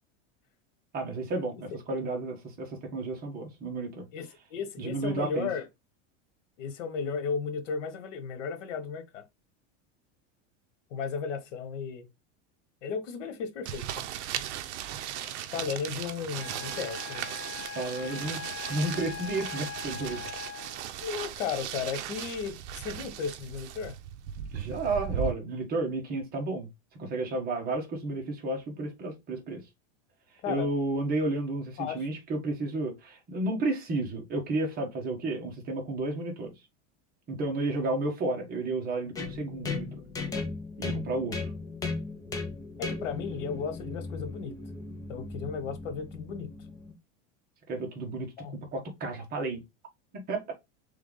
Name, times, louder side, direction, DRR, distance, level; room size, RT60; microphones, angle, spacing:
voice 1, 0.9-4.0 4.8-5.5 15.1-15.5 17.7-18.4 18.7-20.3 24.5-26.7 27.0-29.6 30.5-36.5 37.3-40.0 40.8-41.4 47.7-48.3 48.7-49.6 50.1-50.5, right 2 dB, 25° right, 1.3 m, -32 dB
voice 2, 4.1-5.7 6.6-9.2 10.9-12.1 12.8-14.0 15.5-17.3 21.0-24.0 30.4-30.7 31.8-32.0 42.8-44.5 45.1-46.5 48.4-48.5, left 6 dB, 90° left, 1.3 m, -35 dB
sound 1, 13.7-25.3, right 10 dB, 65° right, 0.7 m, -37 dB
Wind instrument woodwind instrument, 16.3-20.9, left 8 dB, 75° left, 0.5 m, -41 dB
sound 2, 39.2-46.9, left 3 dB, 10° left, 0.4 m, -37 dB
3.5 x 3.4 x 3.8 m
supercardioid pair, 160°, 36 cm